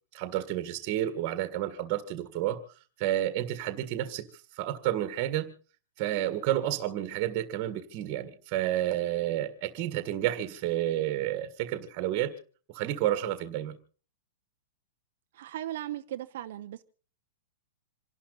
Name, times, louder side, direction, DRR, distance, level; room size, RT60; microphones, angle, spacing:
voice 1, 0.1-2.6 3.0-4.2 4.6-5.5 6.0-12.3 12.7-13.7, right 13 dB, 25° right, 1.8 m, -30 dB
voice 2, 15.3-16.8, right 12 dB, 50° right, 0.8 m, -37 dB
27.5 x 11.5 x 4.1 m
supercardioid pair, 180°, 0 cm